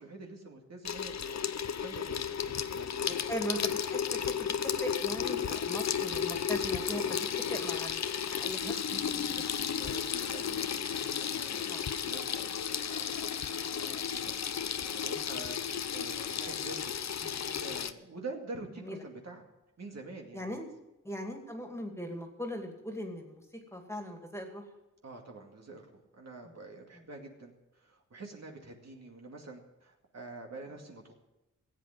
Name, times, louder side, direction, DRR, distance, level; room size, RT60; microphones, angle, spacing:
voice 1, 0.0-3.2 5.5-6.1 6.8-7.3 8.6-14.3 14.8-19.4 19.8-20.6 25.0-31.1, right 3 dB, 55° right, 1 dB, 2.4 m, -47 dB
Water tap faucet / Sink (filling or washing), 0.8-17.9, left 8 dB, 60° left, 0.7 m, -33 dB
voice 2, 3.3-8.6 11.7-11.9 18.8-19.0 20.3-20.6 21.0-23.4 23.7-24.6, equal, 10° left, 3 dB, 2.4 m, -39 dB
16.0 x 8.4 x 7.8 m, 0.97 s
wide cardioid pair, 85°, 31 cm